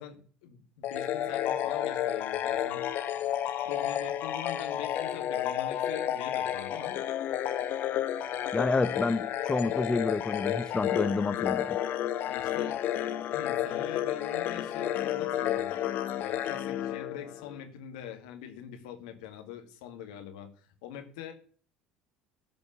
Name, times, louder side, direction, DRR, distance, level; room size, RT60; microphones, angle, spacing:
voice 1, 0.0-3.1 3.6-7.0 12.3-13.0 13.3-15.7 16.2-21.3, left 9 dB, 70° left, 2.0 m, -43 dB
sound 1, 0.8-17.6, left 11 dB, 55° left, 1.1 m, -31 dB
voice 2, 8.5-11.8, left 3 dB, 20° left, 0.7 m, -29 dB
13.0 x 5.2 x 8.3 m
hypercardioid pair, 65°, 4 cm